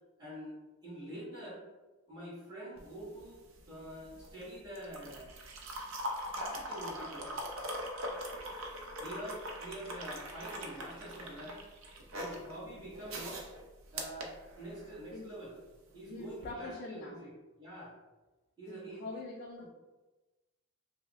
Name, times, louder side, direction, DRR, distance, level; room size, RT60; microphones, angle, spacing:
voice 1, 0.2-1.6 2.1-5.3 6.3-7.5 9.0-11.6 12.1-13.5 13.9-15.5 15.9-17.3 17.6-18.0 18.6-19.2 19.6-19.7, right 1 dB, 20° right, -10 dB, 1.3 m, -46 dB
sound 1, 2.8-15.1 16.3-16.5, equal, 70° right, 0.6 m, -42 dB
voice 2, 16.0-17.2 18.7-19.7, left 2 dB, 45° left, -1 dB, 0.3 m, -44 dB
5.4 x 2.0 x 2.3 m, 1.1 s
head